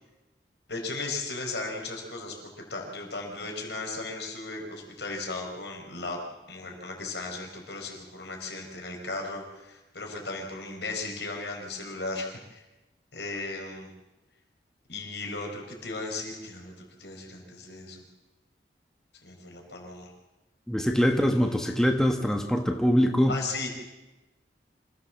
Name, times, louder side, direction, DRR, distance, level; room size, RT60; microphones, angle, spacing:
voice 1, 0.7-2.3 2.7-6.2 6.5-12.6 13.1-13.9 14.9-16.7 17.0-18.0 19.2-20.1 21.1-21.7 23.3-23.7, left 3 dB, 75° left, 2 dB, 4.9 m, -36 dB
voice 2, 20.7-23.3, equal, 5° left, 3 dB, 1.3 m, -23 dB
26.0 x 15.5 x 7.4 m, 1.1 s
head